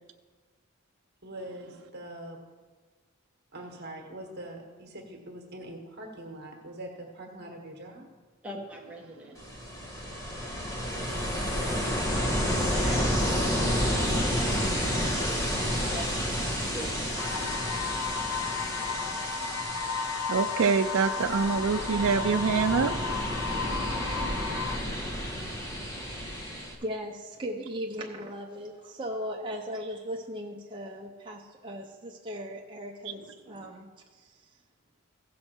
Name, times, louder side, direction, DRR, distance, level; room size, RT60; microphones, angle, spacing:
voice 1, 1.2-2.4 3.5-8.1, right 1 dB, 50° right, 1 dB, 1.5 m, -43 dB
voice 2, 8.4-9.6 12.7-14.8 15.9-16.9, right 1 dB, 5° right, -1 dB, 1.3 m, -43 dB
Ocean, 9.4-26.7, equal, 15° left, 1.3 m, -30 dB
sound 1, 17.2-24.8, left 5 dB, 75° left, 0.6 m, -34 dB
voice 3, 20.3-22.9, right 5 dB, 65° right, 5 dB, 0.4 m, -25 dB
voice 4, 26.5-34.5, equal, 20° right, -1 dB, 0.7 m, -38 dB
15.5 x 6.3 x 4.4 m, 1.4 s
head